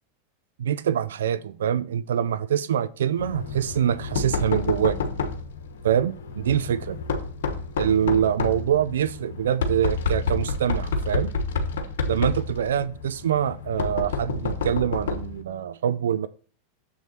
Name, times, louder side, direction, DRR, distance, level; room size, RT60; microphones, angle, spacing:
voice 1, 0.6-5.0 5.8-7.0 7.8-11.3 12.1-16.3, right 9 dB, 70° right, 0.4 m, -24 dB
Knock, 3.2-15.4, left 4 dB, 65° left, 1.1 m, -29 dB
7.3 x 6.1 x 4.3 m
figure-of-eight pair, 90°, 0 cm